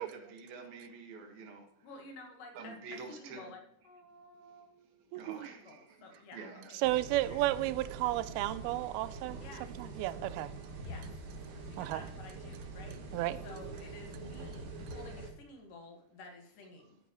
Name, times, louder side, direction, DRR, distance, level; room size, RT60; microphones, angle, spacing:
voice 1, 0.0-1.7 2.5-3.5 4.3-6.7, right 4 dB, 75° right, 3.4 m, -48 dB
voice 2, 1.8-4.7 5.2-7.4 9.3-9.7 10.8-11.2 11.7-17.0, left 2 dB, 70° left, 3.0 m, -52 dB
voice 3, 5.1-5.5 6.8-9.4 9.8-10.5 11.8-12.0 13.1-13.4, right 16 dB, 90° right, 2.5 m, -32 dB
sound 1, 6.8-15.3, right 3 dB, 60° right, 2.5 m, -45 dB
sound 2, 7.1-15.2, left 4 dB, 40° left, 3.0 m, -54 dB
14.5 x 9.2 x 3.1 m
omnidirectional pair, 4.3 m